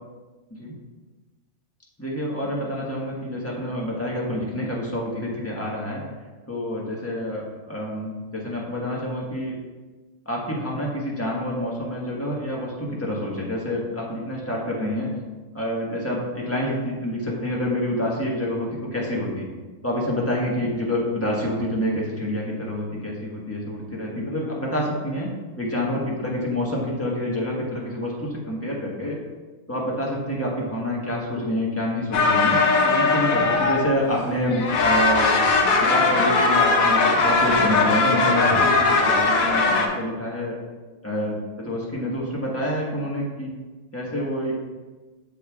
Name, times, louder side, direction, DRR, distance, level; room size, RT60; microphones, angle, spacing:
voice 1, 2.0-6.0 6.5-9.5 10.2-15.1 15.5-19.5 19.8-25.3 25.6-29.2 29.7-35.3 35.8-40.6 41.0-41.4 41.6-43.5 43.9-44.5, left 1 dB, 10° left, -4 dB, 1.3 m, -27 dB
sound 1, 32.1-34.2 34.5-39.9, left 3 dB, 80° left, 1.2 m, -19 dB
8.0 x 6.6 x 2.4 m, 1.3 s
omnidirectional pair, 1.4 m